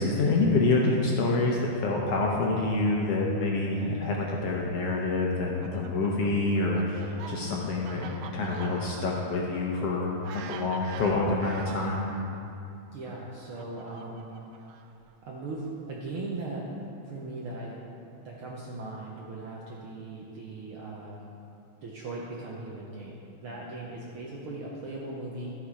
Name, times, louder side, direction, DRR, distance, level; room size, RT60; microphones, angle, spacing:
voice 1, 0.0-12.1, left 2 dB, 70° left, -2 dB, 1.6 m, -27 dB
Fowl, 5.3-12.3 13.1-15.1, right 6 dB, 80° right, 1.4 m, -45 dB
voice 2, 12.9-14.2 15.2-16.6 17.1-17.7 18.2-21.2 21.8-25.5, right 2 dB, 65° right, -4 dB, 1.4 m, -38 dB
13.5 x 5.8 x 4.9 m, 2.7 s
omnidirectional pair, 3.5 m